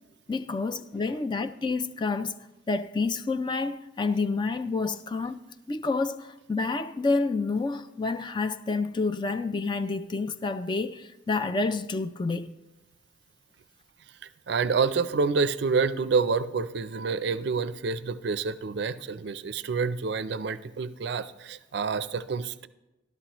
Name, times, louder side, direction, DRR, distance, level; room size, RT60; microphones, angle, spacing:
voice 1, 0.3-2.3 2.7-5.4 5.7-12.5, left 3 dB, 25° left, 0.3 m, -29 dB
voice 2, 14.5-22.7, right 5 dB, 60° right, 0.4 m, -28 dB
13.0 x 12.0 x 3.0 m
head